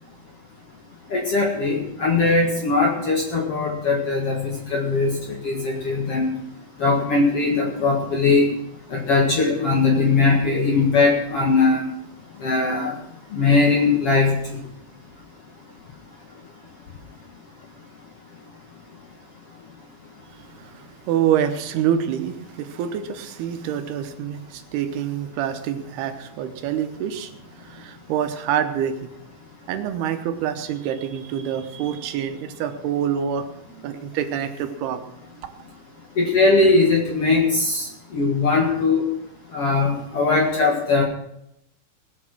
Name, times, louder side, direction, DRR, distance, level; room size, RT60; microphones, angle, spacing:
voice 1, 1.1-6.3 6.8-8.5 8.9-11.8 12.4-12.9 13.3-14.6 36.2-37.9 38.1-39.1 39.5-41.0, left 3 dB, 50° left, 0 dB, 1.9 m, -20 dB
voice 2, 20.3-29.1 29.7-35.0, right 9 dB, 80° right, 8 dB, 2.9 m, -26 dB
19.5 x 7.2 x 6.1 m, 0.78 s
omnidirectional pair, 4.6 m